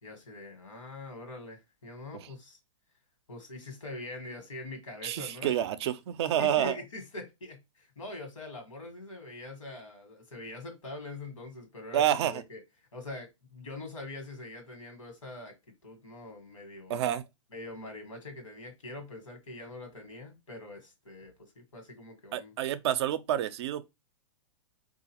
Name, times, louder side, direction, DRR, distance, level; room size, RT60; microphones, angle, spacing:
voice 1, 0.0-2.6 3.3-5.6 6.4-12.6 12.9-15.5 15.8-17.0 17.5-22.5, left 2 dB, 90° left, 1.3 m, -43 dB
voice 2, 5.0-6.8 11.9-12.4 16.9-17.2 22.3-23.9, right 11 dB, 55° right, 0.4 m, -28 dB
3.8 x 2.4 x 2.8 m
hypercardioid pair, 130°, 16 cm